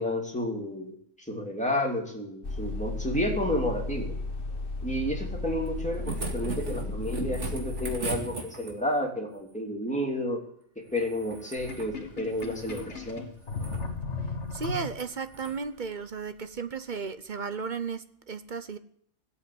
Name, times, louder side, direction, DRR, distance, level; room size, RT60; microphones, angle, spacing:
voice 1, 0.0-4.1 4.8-10.4 10.8-13.3, left 1 dB, 5° left, 2.9 m, -31 dB
sound 1, 2.4-8.0, left 3 dB, 50° left, 1.5 m, -34 dB
sound 2, 5.7-9.0 10.9-11.9 12.3-12.9 13.4-13.8 14.5-14.7 15.3-15.6 16.9-17.0, right 3 dB, 70° right, 2.5 m, -39 dB
Sink (filling or washing), 11.6-15.3, left 4 dB, 65° left, 2.0 m, -36 dB
voice 2, 14.5-18.8, right 5 dB, 45° right, 0.9 m, -34 dB
16.5 x 8.5 x 8.5 m
omnidirectional pair, 1.3 m